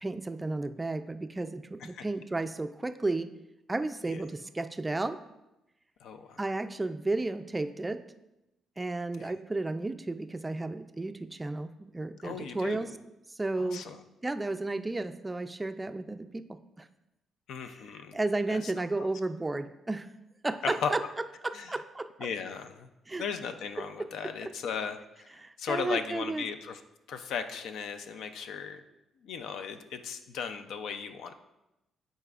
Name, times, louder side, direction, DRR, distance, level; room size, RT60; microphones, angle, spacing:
voice 1, 0.0-3.3 3.7-5.2 6.4-8.0 8.8-12.9 13.3-13.9 14.2-16.9 18.1-20.1 20.4-21.0 21.4-22.1 23.1-23.2 25.4-26.4, right 2 dB, 15° right, 10 dB, 0.3 m, -33 dB
voice 2, 6.0-6.4 9.2-9.3 12.2-12.9 13.6-14.0 17.5-18.2 18.5-18.7 19.0-19.1 20.6-20.9 21.5-21.7 22.2-22.9 23.2-25.3 25.6-26.8 27.1-28.8 29.2-31.3, left 6 dB, 80° left, 8 dB, 0.4 m, -37 dB
9.9 x 4.1 x 2.4 m, 0.94 s
cardioid pair, 90°, 0 cm